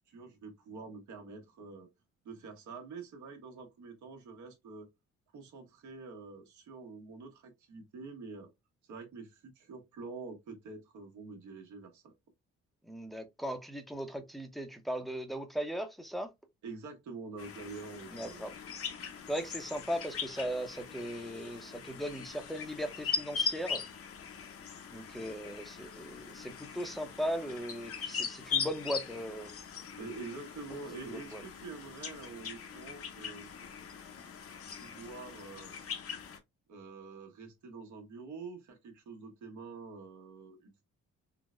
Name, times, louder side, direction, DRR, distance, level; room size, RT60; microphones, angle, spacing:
voice 1, 0.1-1.9 2.2-4.9 5.3-8.5 8.9-12.1 16.6-18.5 30.0-33.5 34.7-35.7 36.7-40.8, right 4 dB, 75° right, 1.2 m, -46 dB
voice 2, 12.9-16.3 18.1-18.5 19.3-23.8 24.9-29.5 31.1-31.4, equal, ahead, 0.6 m, -38 dB
sound 1, 17.4-36.4, left 6 dB, 50° left, 0.7 m, -40 dB
3.8 x 2.1 x 2.4 m
cardioid pair, 90°, 30 cm